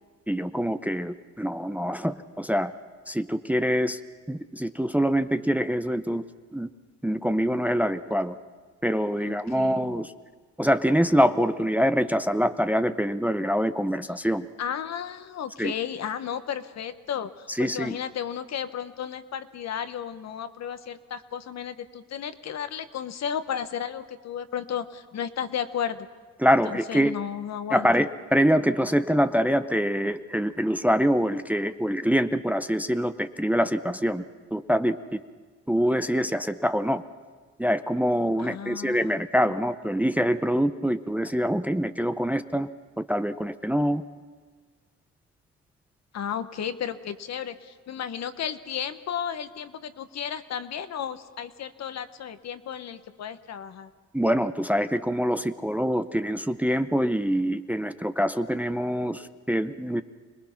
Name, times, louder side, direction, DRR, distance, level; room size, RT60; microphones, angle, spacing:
voice 1, 0.3-2.7 3.1-4.0 4.3-6.2 6.5-6.7 7.0-8.4 8.8-10.1 10.6-14.5 15.6-15.7 17.5-18.0 26.4-27.2 27.7-34.2 34.5-35.2 35.7-37.0 37.6-42.7 43.0-44.0 54.1-60.0, equal, 5° right, 11 dB, 0.6 m, -25 dB
voice 2, 9.2-9.9 14.6-26.1 26.6-27.9 38.4-39.2 46.1-53.9, left 8 dB, 60° left, 11 dB, 1.0 m, -33 dB
26.0 x 19.5 x 5.8 m, 1.5 s
cardioid pair, 90°, 30 cm